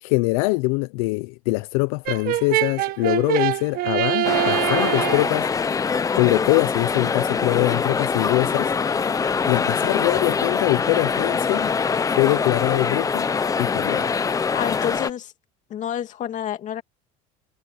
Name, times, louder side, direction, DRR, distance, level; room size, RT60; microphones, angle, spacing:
voice 1, 0.0-5.5 6.2-8.7 9.5-11.7 12.1-13.3 13.6-14.1, left 24 dB, 80° left, 0.8 m, -23 dB
Brass instrument, 2.1-5.4, right 15 dB, 55° right, 1.5 m, -24 dB
sound 1, 4.2-15.1, left 5 dB, 20° left, 0.8 m, -23 dB
voice 2, 14.5-15.3 15.7-16.8, left 10 dB, 45° left, 2.5 m, -28 dB
supercardioid pair, 125°, 18 cm